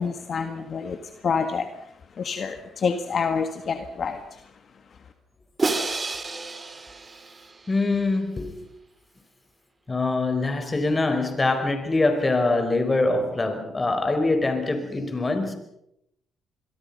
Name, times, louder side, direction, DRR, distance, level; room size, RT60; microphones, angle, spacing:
voice 1, 0.0-4.5 4.9-5.0, left 5 dB, 50° left, 7 dB, 1.8 m, -28 dB
Crash cymbal, 5.6-7.8, right 3 dB, 30° right, 3.0 m, -29 dB
voice 2, 7.7-8.5 9.9-15.5, left 2 dB, 25° left, 7 dB, 4.9 m, -24 dB
26.5 x 22.5 x 5.6 m, 0.80 s
cardioid pair, 90°, 0 cm